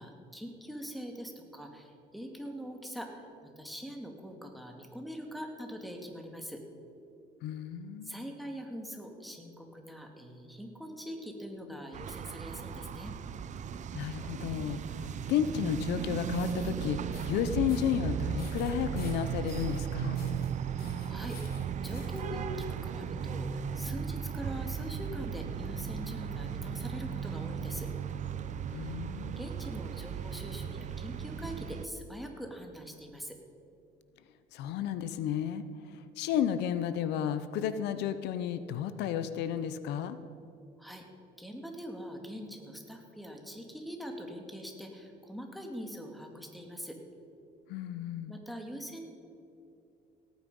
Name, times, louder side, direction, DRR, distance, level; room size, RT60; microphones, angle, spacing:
voice 1, 0.0-6.6 8.0-13.1 21.1-21.4 21.8-27.9 29.4-33.4 40.8-41.1 41.4-47.0 48.3-49.1, equal, ahead, 3 dB, 2.0 m, -43 dB
voice 2, 7.4-8.1 13.9-17.0 17.3-20.2 28.7-29.4 34.5-40.2 47.7-48.4, left 9 dB, 85° left, 12 dB, 0.7 m, -32 dB
sound 1, 11.9-31.9, right 7 dB, 45° right, 0.6 m, -36 dB
sound 2, 16.2-16.7 17.1-17.4 17.7-18.0 18.4-19.8 20.1-20.5 20.8-22.2, left 4 dB, 60° left, 2.9 m, -51 dB
17.5 x 9.1 x 5.3 m, 2.7 s
cardioid pair, 110°, 17 cm